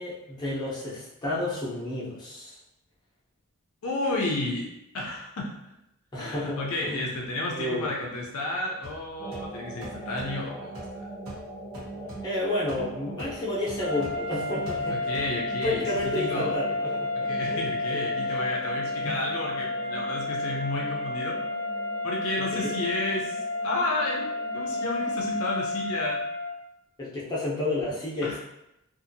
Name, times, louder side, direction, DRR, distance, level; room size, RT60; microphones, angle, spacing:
voice 1, 0.0-2.6 6.1-7.1 7.5-7.9 11.9-15.0 15.6-17.7 22.5-22.8 27.0-28.4, left 2 dB, 20° left, -8 dB, 0.8 m, -31 dB
voice 2, 3.8-4.7 4.9-5.5 6.2-11.1 15.1-15.9 16.1-16.5 17.1-21.4 22.0-26.2 28.2-28.4, left 2 dB, 70° left, -2 dB, 0.5 m, -31 dB
sound 1, 8.8-16.6, equal, 70° right, 1.1 m, -46 dB
sound 2, 9.2-25.2, right 1 dB, 20° right, 0.3 m, -41 dB
sound 3, 13.8-26.6, left 2 dB, 90° right, 1.0 m, -31 dB
2.7 x 2.4 x 2.6 m, 0.85 s
head